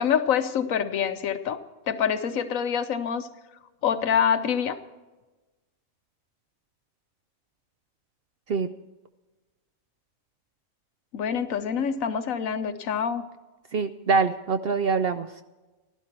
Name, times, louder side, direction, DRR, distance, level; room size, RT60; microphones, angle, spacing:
voice 1, 0.0-3.3 3.8-4.8 11.1-13.2, left 7 dB, 75° left, 10 dB, 1.2 m, -26 dB
voice 2, 13.7-15.3, right 4 dB, 60° right, 9 dB, 0.6 m, -24 dB
16.0 x 12.0 x 4.4 m, 1.1 s
omnidirectional pair, 1.4 m